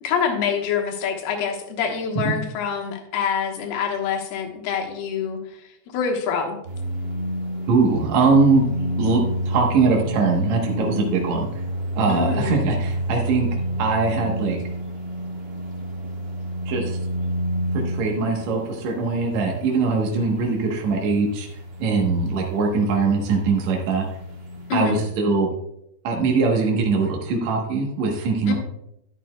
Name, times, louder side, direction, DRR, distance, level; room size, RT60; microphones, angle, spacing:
voice 1, 0.0-5.4 5.9-6.6 12.1-12.6 24.7-25.0 28.5-28.6, left 6 dB, 75° left, 2 dB, 3.1 m, -25 dB
sound 1, 6.6-25.1, equal, 90° right, 1.0 m, -30 dB
voice 2, 7.7-8.6 9.0-11.5 12.0-13.5 13.8-14.6 16.7-17.0 17.9-21.5 21.8-24.1 24.7-25.5 26.0-28.5, right 4 dB, 65° right, 0 dB, 1.8 m, -21 dB
11.0 x 11.0 x 2.2 m, 0.80 s
omnidirectional pair, 4.7 m